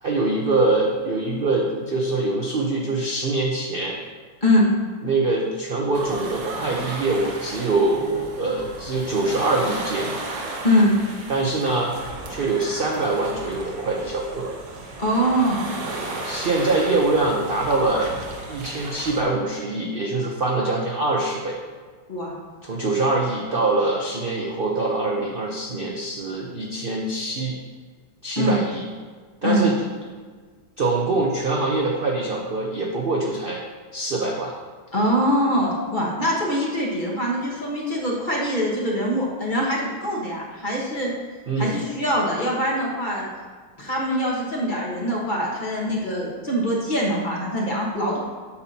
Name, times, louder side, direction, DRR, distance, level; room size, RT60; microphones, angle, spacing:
voice 1, 0.0-4.0 5.0-10.3 11.3-12.0 12.3-14.6 16.2-18.1 18.5-21.6 22.6-27.6 28.2-28.9 29.4-29.8 30.8-33.6 33.9-34.5 41.5-41.8, right 2 dB, 55° right, -1 dB, 0.6 m, -24 dB
sound 1, 5.9-19.2, right 2 dB, 85° right, 1.8 m, -34 dB
voice 2, 15.0-15.6 22.1-22.3 28.4-28.6 29.4-29.6 34.9-41.1 41.6-43.3 43.8-48.2, equal, 30° left, -3 dB, 1.3 m, -23 dB
8.4 x 7.0 x 2.8 m, 1.5 s
omnidirectional pair, 1.9 m